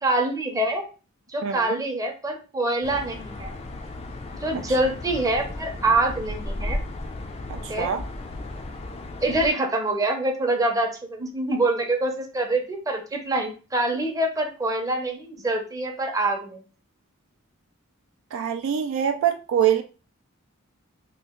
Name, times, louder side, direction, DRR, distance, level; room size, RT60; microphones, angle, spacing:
voice 1, 0.0-0.8 1.3-3.5 4.4-6.8 7.7-7.9 9.2-16.6, right 2 dB, 15° right, 0.6 m, -25 dB
voice 2, 1.4-1.8 7.5-8.0 18.3-19.8, right 9 dB, 65° right, 0.3 m, -24 dB
sound 1, 2.8-9.5, left 2 dB, 30° left, 0.4 m, -35 dB
2.9 x 2.4 x 3.6 m
head